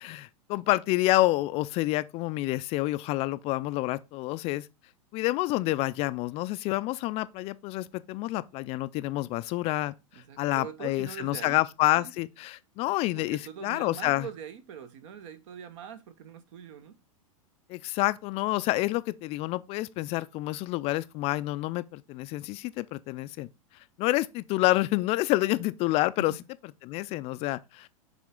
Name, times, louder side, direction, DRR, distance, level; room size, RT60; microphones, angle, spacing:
voice 1, 0.0-4.7 5.1-14.3 17.7-23.5 24.0-26.3 26.8-27.9, left 18 dB, 35° left, 0.4 m, -28 dB
voice 2, 10.1-11.6 12.0-12.1 13.2-17.0 26.2-26.4 27.1-27.2, right 8 dB, 60° right, 1.1 m, -43 dB
7.4 x 3.5 x 3.7 m
hypercardioid pair, 115°, 18 cm